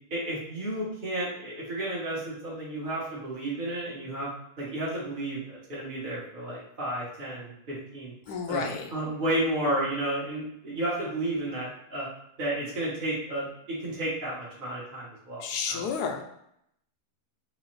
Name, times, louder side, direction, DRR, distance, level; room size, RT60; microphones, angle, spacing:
voice 1, 0.1-4.3 4.6-8.6 8.9-12.1 12.4-15.8, right 1 dB, 35° right, -7 dB, 1.1 m, -32 dB
voice 2, 8.3-8.9 15.4-16.2, left 6 dB, 85° left, 3 dB, 1.2 m, -31 dB
4.1 x 2.7 x 3.1 m, 0.74 s
omnidirectional pair, 1.6 m